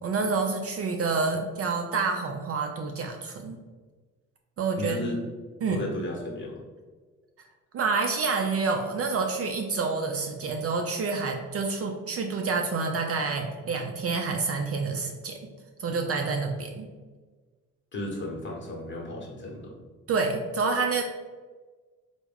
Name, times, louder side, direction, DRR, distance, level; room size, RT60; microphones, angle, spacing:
voice 1, 0.0-3.6 4.6-5.0 5.6-5.8 7.7-15.4 15.8-16.9 20.1-21.0, right 4 dB, 40° right, 3 dB, 0.4 m, -28 dB
voice 2, 4.8-5.2 5.7-6.6 17.9-19.7, left 1 dB, 30° left, -1 dB, 1.0 m, -34 dB
3.3 x 2.1 x 3.5 m, 1.4 s
supercardioid pair, 60°, 36 cm